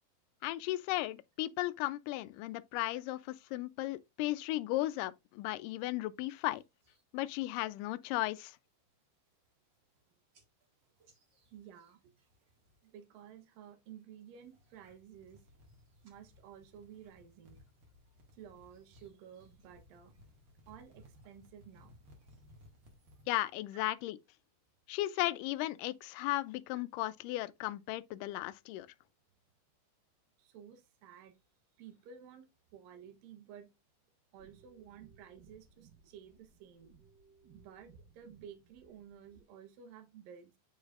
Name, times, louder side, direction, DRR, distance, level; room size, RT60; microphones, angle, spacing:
voice 1, 0.4-6.6 7.1-8.6 23.3-24.2 24.9-28.9, left 17 dB, 80° left, 2.1 m, -35 dB
sound 1, 6.2-7.0 7.4-7.8 8.2-8.6 9.0-9.1 9.3-10.0 10.3-12.9 13.2-13.7 14.2-23.3, left 1 dB, 40° right, 2.1 m, -62 dB
voice 2, 11.5-12.1 12.8-15.5 16.0-17.6 18.3-20.1 20.7-22.0 23.7-23.8 30.4-31.4 31.8-33.7 34.3-36.9 37.5-40.6, right 8 dB, 85° right, 2.7 m, -54 dB
sound 2, 34.4-39.4, right 5 dB, 65° right, 1.1 m, -62 dB
9.4 x 4.8 x 2.4 m
omnidirectional pair, 3.9 m